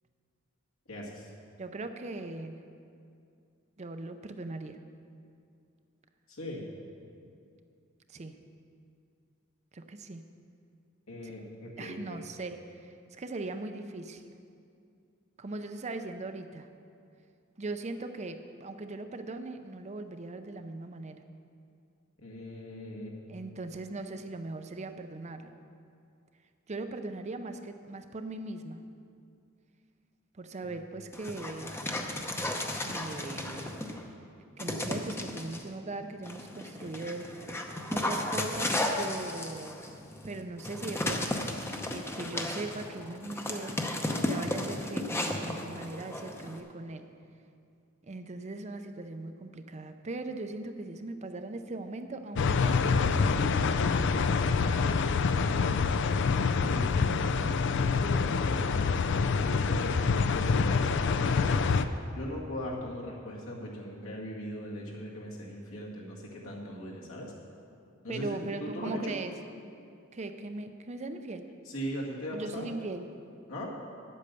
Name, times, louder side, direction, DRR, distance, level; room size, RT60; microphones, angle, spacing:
voice 1, 0.9-1.3 6.3-6.7 11.1-12.2 22.2-23.2 30.6-30.7 56.6-57.6 58.0-58.7 59.3-61.7 62.1-67.3 68.0-69.2 71.7-72.7 73.5-73.7, equal, 75° left, -3 dB, 2.1 m, -39 dB
voice 2, 1.6-2.6 3.8-4.8 8.1-8.3 9.7-10.2 11.2-11.3 11.8-14.2 15.4-16.7 17.6-21.2 23.3-25.5 26.7-28.8 30.3-31.8 32.8-33.7 34.6-37.3 37.9-39.8 40.2-41.4 41.9-43.8 44.2-47.1 48.1-53.7 54.3-55.0 58.3-58.4 68.1-69.3 70.1-71.5 72.3-73.1, right 2 dB, 35° right, 8 dB, 0.5 m, -39 dB
Dog, 31.1-34.0 34.6-35.6 36.2-46.6, left 1 dB, 10° left, 0.7 m, -34 dB
sound 1, 52.4-61.8, left 5 dB, 60° left, 0.4 m, -26 dB
9.8 x 8.4 x 6.9 m, 2.4 s
head